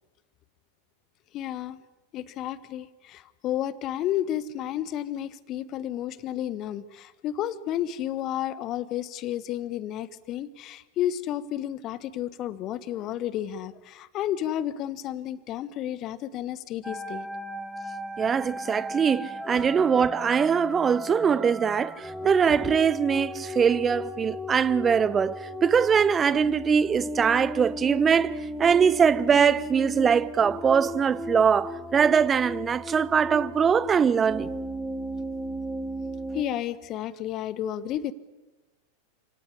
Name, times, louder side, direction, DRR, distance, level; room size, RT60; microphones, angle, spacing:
voice 1, 1.3-1.8 2.1-17.3 19.5-19.7 36.3-38.1, left 11 dB, 35° left, 1.3 m, -32 dB
sound 1, 16.8-36.4, left 1 dB, 5° right, 2.3 m, -36 dB
voice 2, 18.2-34.5, right 7 dB, 20° right, 0.9 m, -22 dB
29.0 x 18.5 x 9.9 m
figure-of-eight pair, 90°, 0 cm